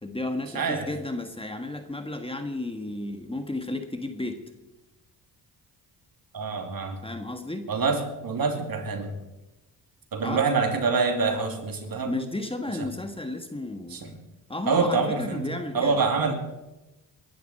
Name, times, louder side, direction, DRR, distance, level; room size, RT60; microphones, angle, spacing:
voice 1, 0.0-4.4 7.0-7.7 10.2-10.4 12.0-14.2 14.5-16.0, left 2 dB, 15° left, 6 dB, 1.7 m, -33 dB
voice 2, 0.5-0.9 6.3-7.0 7.7-9.1 10.1-12.2 12.8-12.9 13.9-14.1 14.7-15.5 15.7-16.3, right 4 dB, 55° right, 4 dB, 2.9 m, -26 dB
21.0 x 11.5 x 4.4 m, 1.0 s
cardioid pair, 70°, 42 cm